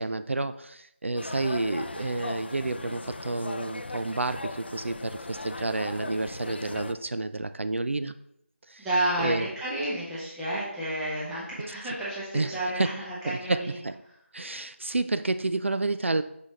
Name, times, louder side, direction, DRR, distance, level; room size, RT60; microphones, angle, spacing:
voice 1, 0.0-8.1 8.7-8.9 9.2-9.5 12.3-13.0 13.3-14.0 14.3-16.2, right 2 dB, 65° right, 11 dB, 0.4 m, -30 dB
sound 1, 1.2-6.9, left 2 dB, 50° left, 0.4 m, -38 dB
voice 2, 8.8-13.8, right 1 dB, 5° right, -8 dB, 0.8 m, -31 dB
6.1 x 5.7 x 3.2 m, 0.76 s
figure-of-eight pair, 165°, 7 cm